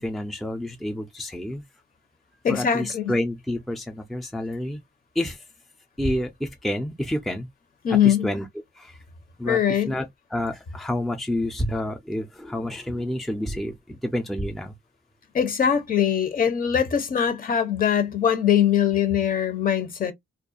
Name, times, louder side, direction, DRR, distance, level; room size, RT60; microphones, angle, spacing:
voice 1, 0.0-1.6 2.5-4.8 5.2-5.4 6.0-7.5 8.0-8.5 8.8-9.0 9.4-14.7, left 1 dB, ahead, 0.4 m, -29 dB
voice 2, 2.4-3.1 7.8-8.3 9.4-9.9 15.3-20.1, left 9 dB, 45° left, 0.7 m, -22 dB
2.3 x 2.2 x 2.6 m
cardioid pair, 90°, 20 cm